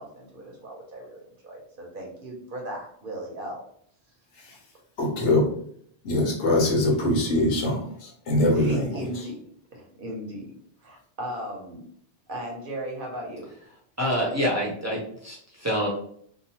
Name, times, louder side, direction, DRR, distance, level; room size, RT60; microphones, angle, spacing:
voice 1, 0.0-3.6 4.5-4.6 8.5-9.4 9.7-10.5 10.8-11.8 12.3-13.5, right 1 dB, 55° right, -1 dB, 0.9 m, -37 dB
voice 2, 5.0-5.5 6.0-9.0, left 1 dB, 85° left, 0 dB, 1.1 m, -23 dB
voice 3, 14.0-15.9, equal, 20° right, -5 dB, 0.6 m, -26 dB
2.8 x 2.2 x 2.8 m, 0.64 s
omnidirectional pair, 1.1 m